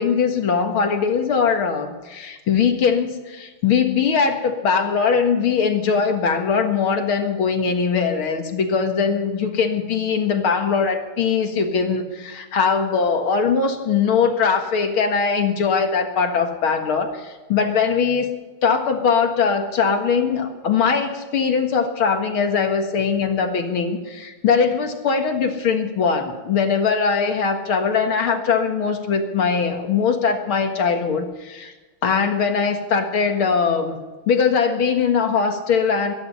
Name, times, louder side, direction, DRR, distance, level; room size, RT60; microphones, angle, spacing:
voice 1, 0.0-18.3 18.6-31.7 32.0-34.0 34.3-36.1, left 5 dB, 70° left, 5 dB, 2.5 m, -21 dB
23.5 x 10.5 x 5.6 m, 1.2 s
omnidirectional pair, 2.4 m